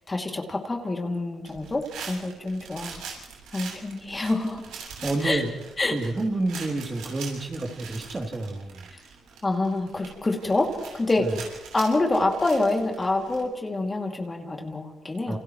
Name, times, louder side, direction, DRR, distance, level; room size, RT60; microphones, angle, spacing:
voice 1, 0.1-3.0 3.5-4.6 5.2-5.4 5.8-6.0 9.4-11.3 11.7-15.4, left 2 dB, 25° left, 1 dB, 2.6 m, -26 dB
sound 1, 1.5-13.4, right 6 dB, 90° right, 7.8 m, -43 dB
voice 2, 5.0-5.6 5.9-8.9 11.2-11.3 15.3-15.4, right 2 dB, 25° right, 2 dB, 3.1 m, -29 dB
29.0 x 29.0 x 3.2 m, 1.0 s
cardioid pair, 90°, 0 cm